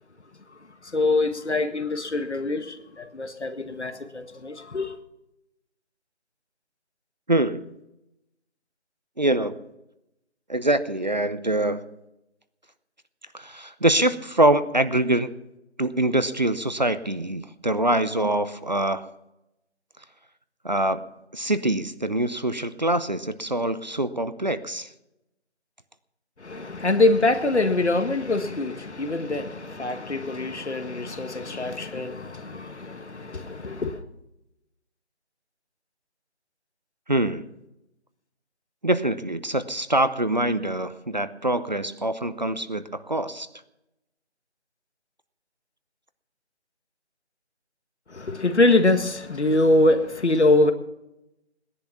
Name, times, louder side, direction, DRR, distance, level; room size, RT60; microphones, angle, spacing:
voice 1, 0.8-5.0 26.4-34.0 48.1-50.7, left 2 dB, 75° left, 1.8 m, -24 dB
voice 2, 7.3-7.6 9.2-9.6 10.5-11.8 13.3-15.3 15.8-19.1 20.6-21.0 21.3-24.9 37.1-37.4 38.8-43.5, right 1 dB, 40° right, 0.6 m, -24 dB
18.0 x 10.5 x 5.9 m
figure-of-eight pair, 170°, 34 cm